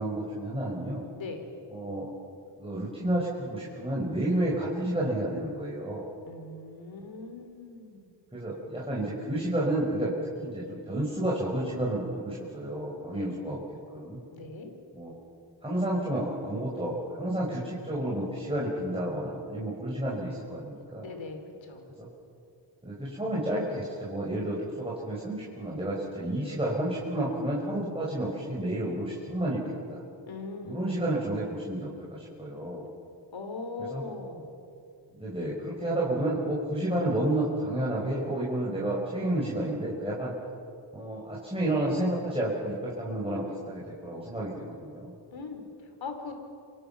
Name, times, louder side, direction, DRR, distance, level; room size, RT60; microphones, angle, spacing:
voice 1, 0.0-1.0 1.7-2.1 2.6-6.1 8.3-10.1 10.4-13.6 13.9-14.2 14.9-15.1 15.6-21.1 22.0-22.1 22.8-30.0 30.6-32.9 33.9-34.0 35.2-40.3 40.9-45.1, right 1 dB, 10° right, -5 dB, 5.4 m, -31 dB
voice 2, 1.1-1.5 6.3-8.0 8.6-9.2 13.1-13.3 14.3-14.7 21.0-21.8 30.3-31.1 33.3-34.5 45.3-46.3, left 3 dB, 90° left, 5 dB, 3.3 m, -41 dB
28.5 x 24.5 x 5.9 m, 2.5 s
cardioid pair, 75°, 45 cm